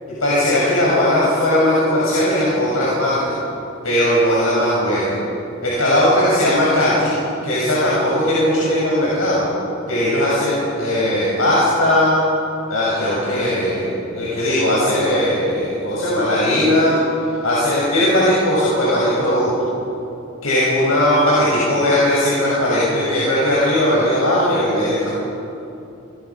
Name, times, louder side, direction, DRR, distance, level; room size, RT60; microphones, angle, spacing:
voice 1, 0.2-3.3 3.8-5.1 5.6-7.1 7.4-9.5 9.9-12.2 12.7-17.0 17.4-19.5 20.4-25.1, left 1 dB, 90° left, -7 dB, 7.4 m, -18 dB
29.5 x 23.0 x 6.2 m, 2.8 s
head